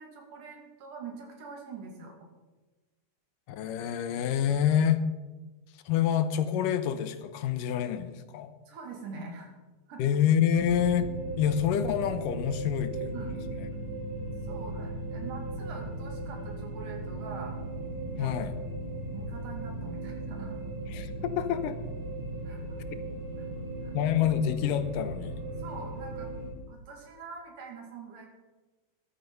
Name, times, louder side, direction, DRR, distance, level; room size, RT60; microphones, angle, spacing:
voice 1, 0.0-2.1 8.7-9.5 9.9-10.0 13.1-13.4 14.4-17.5 18.1-18.4 19.1-20.6 22.4-22.8 23.8-23.9 25.6-26.3 26.7-28.3, right 4 dB, 75° right, 2 dB, 3.9 m, -44 dB
voice 2, 3.5-5.0 5.9-8.5 10.0-11.1 11.4-13.1 18.2-18.6 20.9-21.8 22.9-23.0 23.9-25.4, left 9 dB, 85° left, 11 dB, 2.5 m, -27 dB
sound 1, 10.5-26.5, right 2 dB, 40° right, 3.8 m, -37 dB
14.0 x 12.0 x 5.4 m, 1.2 s
omnidirectional pair, 3.7 m